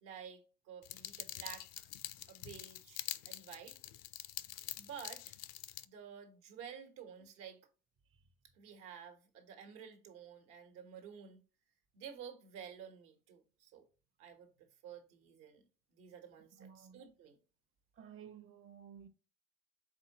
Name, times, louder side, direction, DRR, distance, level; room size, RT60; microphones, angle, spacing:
voice 1, 0.0-1.9 2.3-3.8 4.8-5.4 5.8-7.6 8.5-11.4 11.9-13.8 14.2-15.6 15.9-17.4, right 8 dB, 75° right, 1.2 m, -52 dB
sound 1, 0.8-5.8, left 14 dB, 60° left, 0.5 m, -46 dB
voice 2, 16.6-17.0 18.0-19.1, right 8 dB, 45° right, 0.8 m, -54 dB
4.5 x 3.8 x 2.9 m
supercardioid pair, 80°, 29 cm